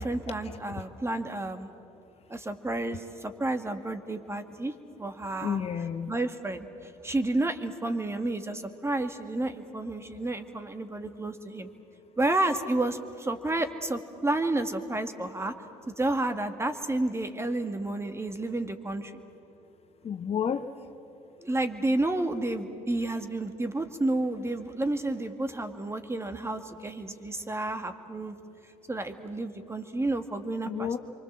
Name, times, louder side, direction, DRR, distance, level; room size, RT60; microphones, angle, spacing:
voice 1, 0.0-1.7 2.3-5.6 6.1-11.7 12.2-15.5 16.0-19.2 21.4-28.4 28.9-30.9, right 2 dB, 15° right, 8 dB, 2.1 m, -31 dB
voice 2, 5.4-6.2 20.0-20.7 30.6-31.0, left 7 dB, 45° left, 9 dB, 1.1 m, -31 dB
27.5 x 24.0 x 7.6 m, 2.9 s
hypercardioid pair, 60°, 15 cm